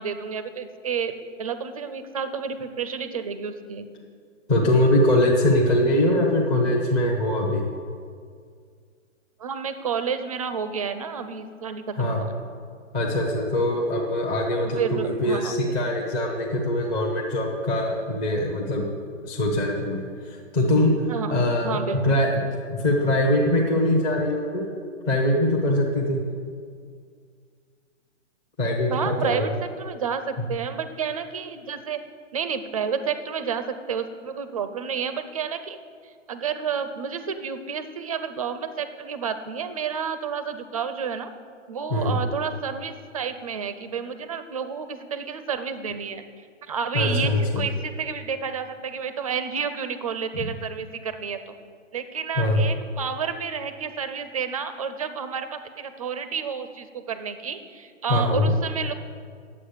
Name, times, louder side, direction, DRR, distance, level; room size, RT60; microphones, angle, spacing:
voice 1, 0.0-3.9 9.4-12.3 14.6-15.8 21.1-21.4 21.6-22.2 28.9-32.0 32.3-35.8 36.0-41.3 41.7-46.2 46.6-51.5 51.9-58.9, right 6 dB, 30° right, 10 dB, 0.5 m, -30 dB
voice 2, 4.5-7.6 12.0-12.2 12.9-18.9 19.2-21.0 21.3-24.7 25.1-26.2 28.6-29.5 41.9-42.1 46.9-47.6 50.4-50.5 52.4-52.7 58.1-58.5, left 1 dB, 15° left, -2 dB, 0.7 m, -22 dB
9.8 x 7.6 x 6.5 m, 2.1 s
hypercardioid pair, 155°, 38 cm